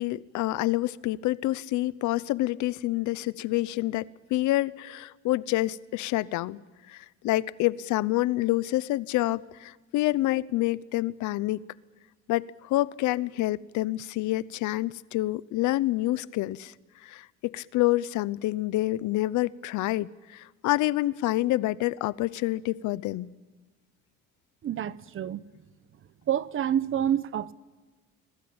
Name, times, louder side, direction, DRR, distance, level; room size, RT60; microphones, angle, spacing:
voice 1, 0.0-6.6 6.9-11.6 12.3-16.7 17.0-23.3, left 17 dB, 80° left, 0.8 m, -27 dB
voice 2, 24.6-25.4 26.3-27.5, right 10 dB, 45° right, 0.9 m, -28 dB
29.5 x 21.0 x 8.8 m
cardioid pair, 125°, 29 cm